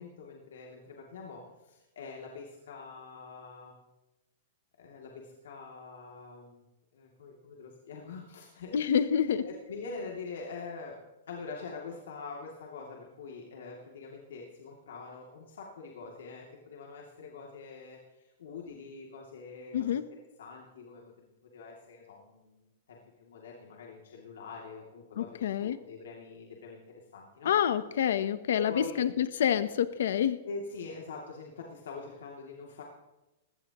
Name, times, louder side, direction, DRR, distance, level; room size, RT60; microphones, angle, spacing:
voice 1, 0.0-3.8 4.8-6.6 6.9-9.0 9.3-11.0 11.3-20.0 20.4-22.6 22.9-27.5 28.5-29.0 30.4-32.8, left 4 dB, 85° left, -1 dB, 2.6 m, -44 dB
voice 2, 8.7-9.4 19.7-20.1 25.2-25.8 27.4-30.4, left 9 dB, 65° left, 13 dB, 0.8 m, -27 dB
19.5 x 17.5 x 3.0 m, 1.0 s
supercardioid pair, 175°, 0 cm